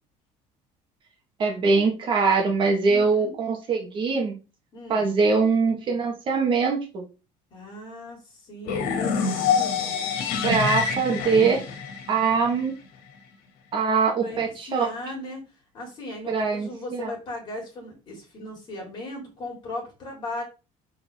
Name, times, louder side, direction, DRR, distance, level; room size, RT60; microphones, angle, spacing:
voice 1, 1.4-4.3 4.9-7.0 10.4-11.6 12.1-12.7 13.7-14.9 16.3-17.1, right 4 dB, 35° right, 2 dB, 1.4 m, -22 dB
voice 2, 2.8-3.4 4.7-5.0 7.5-9.8 14.2-15.4 15.7-20.4, left 1 dB, 30° left, -1 dB, 3.7 m, -37 dB
sound 1, 8.6-12.6, left 6 dB, 80° left, 1.9 m, -26 dB
6.9 x 5.6 x 3.5 m, 0.31 s
cardioid pair, 180°, 15 cm